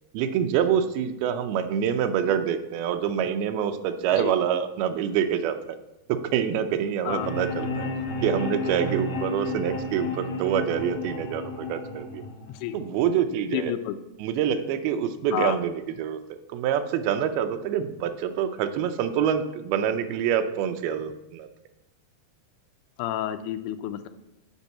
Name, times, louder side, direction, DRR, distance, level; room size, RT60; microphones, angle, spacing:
voice 1, 0.1-5.6 6.1-7.9 8.2-12.2 12.7-13.8 14.2-21.5, right 8 dB, 80° right, 7 dB, 2.5 m, -26 dB
sound 1, 7.1-13.1, left 2 dB, 70° left, 3.2 m, -32 dB
voice 2, 13.5-14.0 15.3-15.6 23.0-24.1, left 12 dB, 90° left, 8 dB, 2.6 m, -30 dB
8.3 x 5.3 x 7.3 m, 0.90 s
omnidirectional pair, 4.5 m